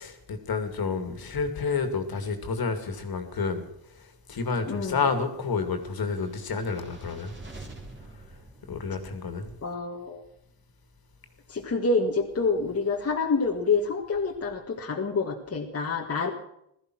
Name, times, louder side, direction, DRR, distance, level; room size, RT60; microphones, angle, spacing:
voice 1, 0.0-7.4 8.7-9.5, left 4 dB, 50° left, 2.6 m, -30 dB
voice 2, 4.7-5.0 9.6-10.2 11.5-16.3, left 4 dB, 30° left, 1.8 m, -27 dB
sound 1, 6.0-9.4, right 2 dB, 25° right, 3.5 m, -47 dB
16.5 x 13.5 x 6.2 m
cardioid pair, 90°, 47 cm